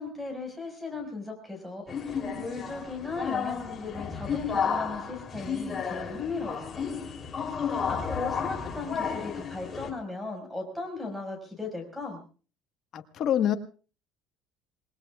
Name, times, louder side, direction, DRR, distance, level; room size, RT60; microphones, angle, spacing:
voice 1, 0.0-6.9 7.9-12.2, left 3 dB, ahead, 6 dB, 5.2 m, -37 dB
sound 1, 1.9-9.9, left 6 dB, 20° left, 3.2 m, -32 dB
voice 2, 12.9-13.5, left 10 dB, 40° left, 6 dB, 1.4 m, -25 dB
28.0 x 20.5 x 2.4 m, 0.39 s
cardioid pair, 165°, 0 cm